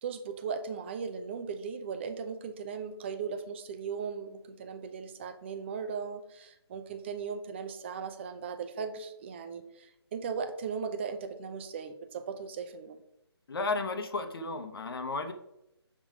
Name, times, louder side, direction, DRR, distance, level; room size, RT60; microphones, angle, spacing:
voice 1, 0.0-13.0, right 6 dB, 25° right, 8 dB, 0.5 m, -38 dB
voice 2, 13.5-15.3, left 3 dB, 55° left, 8 dB, 0.9 m, -33 dB
7.0 x 3.7 x 4.9 m, 0.85 s
figure-of-eight pair, 155°, 14 cm